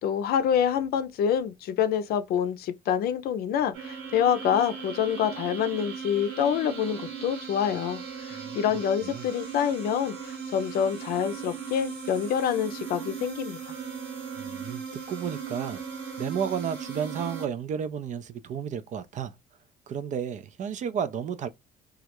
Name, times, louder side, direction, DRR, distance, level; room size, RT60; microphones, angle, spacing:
voice 1, 0.0-13.6, left 8 dB, 65° left, 0.5 m, -27 dB
sound 1, 3.7-17.5, right 6 dB, 80° right, 1.3 m, -38 dB
voice 2, 14.4-15.8 16.2-19.3 19.9-21.5, right 8 dB, 45° right, 0.4 m, -32 dB
2.4 x 2.0 x 2.8 m
cardioid pair, 110°, 17 cm